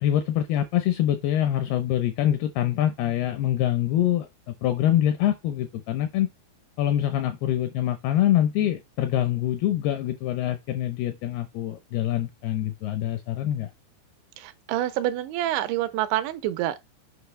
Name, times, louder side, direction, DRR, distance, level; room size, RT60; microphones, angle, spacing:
voice 1, 0.0-6.3 6.8-13.7, left 12 dB, 80° left, 2.3 m, -25 dB
voice 2, 14.4-16.8, right 13 dB, 80° right, 3.0 m, -27 dB
8.0 x 5.3 x 3.2 m
omnidirectional pair, 5.3 m